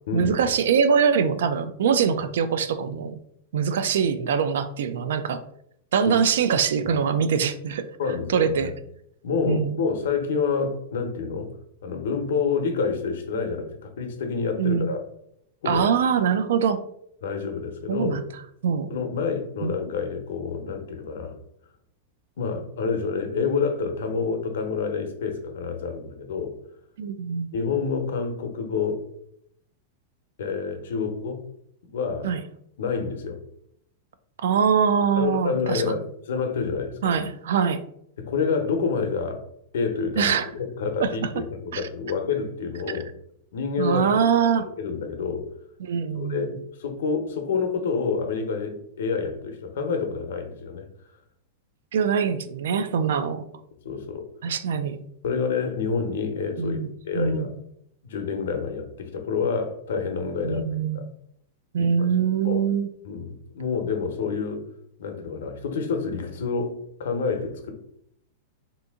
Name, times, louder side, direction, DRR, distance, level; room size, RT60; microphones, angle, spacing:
voice 1, 0.1-3.2 3.5-5.4 5.9-7.9 8.3-8.7 9.5-9.8 14.6-14.9 15.7-16.8 17.9-18.2 18.6-19.0 19.6-19.7 27.0-27.5 32.2-32.4 34.4-36.0 37.0-37.8 40.2-40.5 41.0-41.1 41.7-41.8 43.8-44.6 45.8-46.5 51.9-53.4 54.4-55.0 56.6-57.5 60.4-61.1 61.7-62.9, right 6 dB, 75° right, 11 dB, 0.3 m, -23 dB
voice 2, 8.0-8.7 9.2-11.5 11.8-15.0 15.6-15.9 17.2-18.2 18.9-21.3 22.4-26.6 27.5-29.0 30.4-31.4 31.8-32.3 32.8-33.4 35.2-37.2 38.2-39.4 39.7-43.1 43.5-44.3 44.8-45.5 46.2-50.8 53.8-54.3 55.2-56.8 57.0-57.5 58.0-60.6 60.9-61.0 61.8-62.1 62.4-62.6 63.0-64.6 65.0-67.7, left 5 dB, 75° left, 5 dB, 0.7 m, -28 dB
2.8 x 2.6 x 3.5 m, 0.72 s
supercardioid pair, 175°, 0 cm